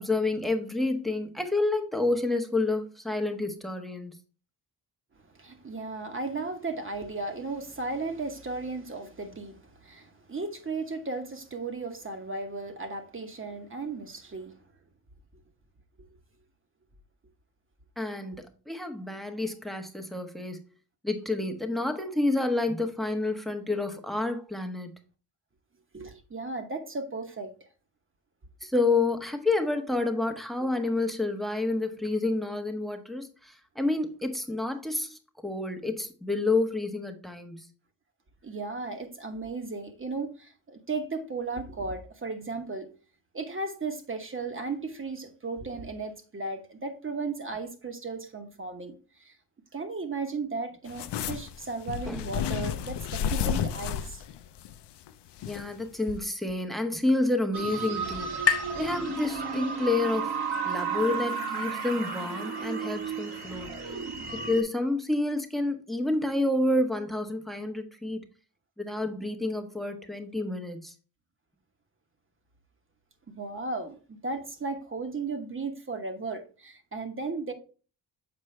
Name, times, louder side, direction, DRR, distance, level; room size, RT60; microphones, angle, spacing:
voice 1, 0.0-4.2 18.0-20.6 21.0-24.9 28.6-37.7 52.1-52.3 55.4-60.4 60.7-63.7 64.3-68.2 68.8-70.9, left 2 dB, ahead, 0.9 m, -29 dB
voice 2, 5.3-14.6 25.9-27.5 38.4-42.9 43.3-49.3 49.7-54.2 73.4-77.5, right 3 dB, 30° right, 1.1 m, -35 dB
sound 1, 50.9-55.7 56.1-56.2, left 9 dB, 75° left, 0.5 m, -32 dB
sound 2, 56.1-59.9, left 7 dB, 35° left, 0.7 m, -34 dB
sound 3, 57.5-64.6, right 5 dB, 65° right, 1.6 m, -33 dB
7.1 x 4.6 x 3.2 m
cardioid pair, 85°, 41 cm